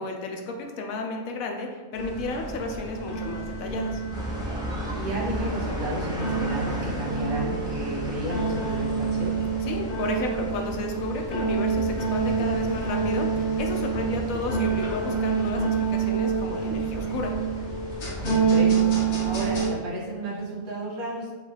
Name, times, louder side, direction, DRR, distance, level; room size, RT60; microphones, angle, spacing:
voice 1, 0.0-4.0 9.6-17.3, left 3 dB, 75° left, 2 dB, 1.0 m, -33 dB
sound 1, 1.9-19.7, right 5 dB, 50° left, 1.3 m, -27 dB
sound 2, 4.1-18.4, equal, 5° right, 0.3 m, -36 dB
voice 2, 4.9-9.4 18.2-18.9 19.2-21.3, right 1 dB, 80° right, -6 dB, 1.7 m, -32 dB
5.2 x 2.3 x 3.2 m, 1.3 s
omnidirectional pair, 1.5 m